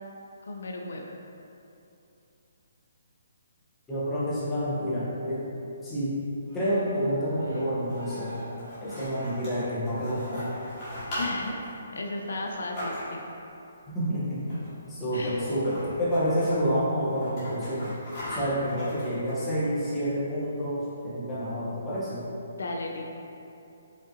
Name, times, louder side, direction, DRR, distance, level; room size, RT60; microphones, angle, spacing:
voice 1, 0.4-1.1 11.2-11.6 11.9-13.2 15.1-15.4 22.6-23.0, left 2 dB, 75° left, 1 dB, 0.4 m, -34 dB
voice 2, 3.9-5.4 5.8-6.1 6.5-8.4 8.8-10.5 13.9-14.5 14.9-17.9 18.2-22.2, equal, 5° left, -12 dB, 0.7 m, -28 dB
Cheering, 6.4-11.7 12.1-12.5, right 1 dB, 70° right, 1.3 m, -48 dB
sound 1, 7.7-13.4 14.4-14.9 15.1-15.2 15.5-16.6 17.0-19.6, left 1 dB, 25° left, 1.3 m, -39 dB
4.9 x 2.7 x 2.7 m, 2.8 s
hypercardioid pair, 175°, 0 cm